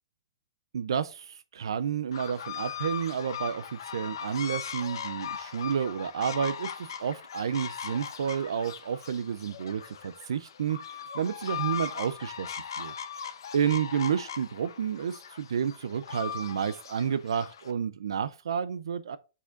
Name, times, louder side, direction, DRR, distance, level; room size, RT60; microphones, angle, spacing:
voice 1, 0.7-12.9 13.5-19.2, right 7 dB, 75° right, 0.5 m, -31 dB
sound 1, 2.1-17.7, left 8 dB, 60° left, 1.0 m, -39 dB
6.9 x 4.9 x 3.8 m
hypercardioid pair, 180°, 3 cm